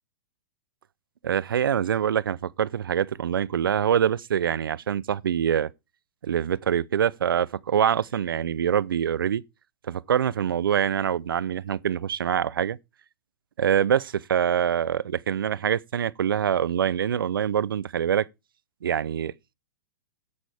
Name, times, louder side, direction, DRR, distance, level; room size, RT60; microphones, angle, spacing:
voice 1, 1.2-5.7 6.2-9.4 9.9-12.8 13.6-18.3 18.8-19.5, right 9 dB, 85° right, 0.6 m, -25 dB
10.5 x 8.7 x 3.4 m
hypercardioid pair, 135°, 11 cm